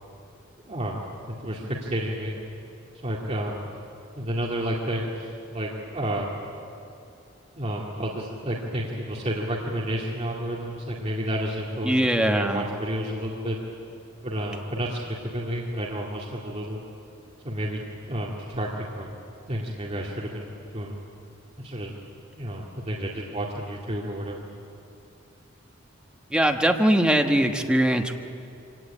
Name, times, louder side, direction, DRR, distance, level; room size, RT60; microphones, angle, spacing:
voice 1, 0.7-1.0 1.3-2.4 3.0-3.6 4.2-6.3 7.6-13.6 14.2-16.8 17.4-17.8 18.1-19.1 19.5-21.0 21.6-22.0 22.4-24.4, equal, 30° right, -3 dB, 2.2 m, -30 dB
voice 2, 11.8-12.6 26.3-28.1, right 1 dB, 5° right, 4 dB, 1.2 m, -21 dB
24.5 x 17.5 x 9.9 m, 2.7 s
head